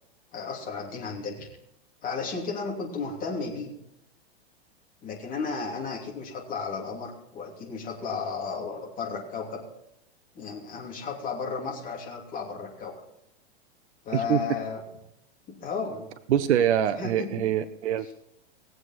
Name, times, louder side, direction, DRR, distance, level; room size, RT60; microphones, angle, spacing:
voice 1, 0.3-1.5 2.0-3.7 5.0-9.6 10.3-12.9 14.0-14.8 15.5-16.1 17.0-17.4 18.0-18.1, left 5 dB, 25° left, -2 dB, 2.9 m, -34 dB
voice 2, 16.3-18.1, right 10 dB, 85° right, 9 dB, 0.8 m, -24 dB
18.5 x 7.9 x 4.2 m, 0.78 s
supercardioid pair, 150°, 33 cm